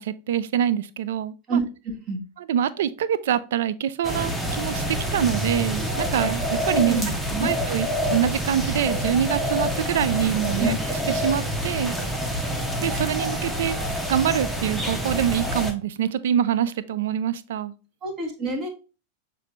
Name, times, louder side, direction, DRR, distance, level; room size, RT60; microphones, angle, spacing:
voice 1, 0.0-1.6 2.5-7.0 7.4-11.9 12.8-13.8 14.1-17.7, right 9 dB, 55° right, 0.3 m, -25 dB
voice 2, 1.5-2.2 6.8-7.5 10.6-10.8 18.0-18.7, right 3 dB, 35° right, 1.3 m, -27 dB
sound 1, 4.0-15.7, equal, 5° right, 0.8 m, -27 dB
6.5 x 2.6 x 3.1 m
figure-of-eight pair, 90°, 0 cm